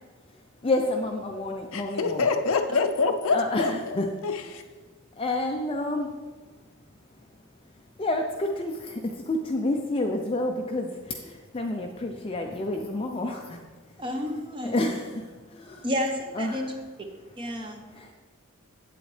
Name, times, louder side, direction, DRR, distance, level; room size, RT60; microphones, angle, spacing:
voice 1, 0.6-2.3 3.3-4.1 4.4-4.6 5.2-6.1 8.0-13.6 14.6-15.9 16.3-16.7 17.9-18.1, left 2 dB, 25° left, 2 dB, 0.4 m, -29 dB
voice 2, 1.7-4.0 4.2-4.6, left 4 dB, 65° left, 6 dB, 0.6 m, -26 dB
voice 3, 14.0-14.8 15.8-16.7 17.4-17.8, equal, 20° right, 4 dB, 0.8 m, -30 dB
8.6 x 7.9 x 3.2 m, 1.4 s
head